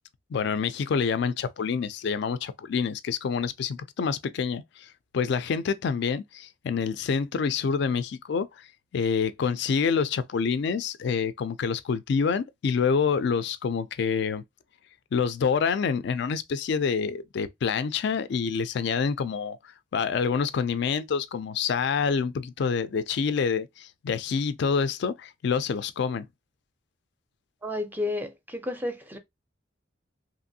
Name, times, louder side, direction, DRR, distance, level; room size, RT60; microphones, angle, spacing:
voice 1, 0.3-4.6 5.1-8.5 8.9-14.4 15.1-19.6 19.9-26.3, left 6 dB, 60° left, 0.3 m, -27 dB
voice 2, 27.6-29.2, left 2 dB, 10° right, 0.4 m, -31 dB
2.9 x 2.5 x 2.6 m
head